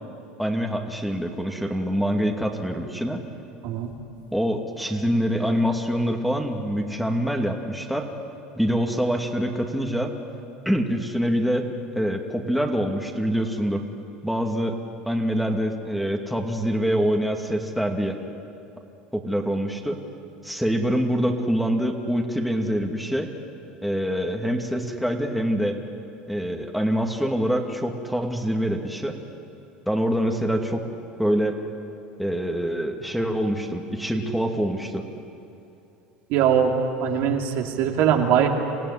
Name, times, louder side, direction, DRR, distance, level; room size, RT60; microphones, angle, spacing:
voice 1, 0.4-3.2 4.3-8.1 8.6-10.1 10.7-11.7 12.0-13.8 14.2-14.7 15.1-18.2 19.1-20.0 20.4-23.3 23.8-25.8 26.3-29.2 29.9-30.8 31.2-31.6 32.2-35.0, equal, ahead, 2 dB, 2.4 m, -25 dB
voice 2, 36.3-38.5, right 8 dB, 65° right, 1 dB, 2.7 m, -21 dB
26.5 x 15.5 x 10.0 m, 2.7 s
supercardioid pair, 100°, 4 cm